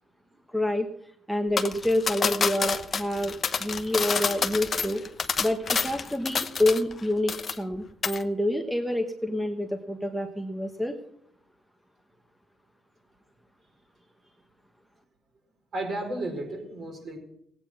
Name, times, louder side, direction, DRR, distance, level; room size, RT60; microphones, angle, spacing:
voice 1, 0.5-0.9 1.3-3.3 3.6-5.0 5.4-10.9, left 1 dB, ahead, 4 dB, 1.2 m, -27 dB
sound 1, 1.6-7.0 7.3-7.8 8.0-8.2, left 5 dB, 40° left, 0.9 m, -28 dB
voice 2, 15.7-17.2, right 1 dB, 50° right, 2 dB, 4.7 m, -33 dB
17.0 x 8.9 x 6.2 m, 0.75 s
cardioid pair, 90°, 0 cm